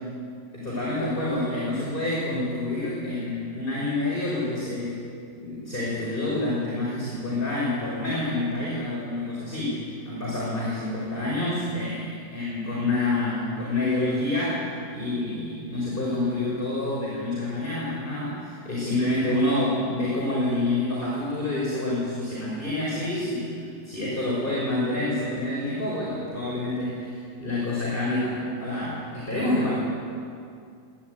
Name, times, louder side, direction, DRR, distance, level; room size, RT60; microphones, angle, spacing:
voice 1, 0.5-5.0 5.3-14.7 14.9-29.7, left 2 dB, 15° left, -5 dB, 5.7 m, -28 dB
24.5 x 20.5 x 9.5 m, 2.3 s
omnidirectional pair, 3.6 m